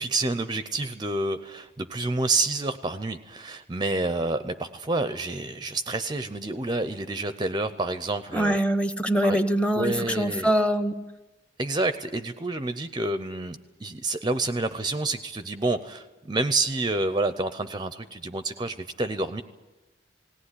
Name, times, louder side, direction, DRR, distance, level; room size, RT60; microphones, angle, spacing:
voice 1, 0.0-8.6 9.2-9.4 9.7-10.5 11.6-19.4, right 2 dB, 25° right, 10 dB, 0.7 m, -28 dB
voice 2, 8.3-10.9, equal, 5° left, 10 dB, 1.0 m, -23 dB
19.0 x 17.5 x 9.9 m, 1.1 s
head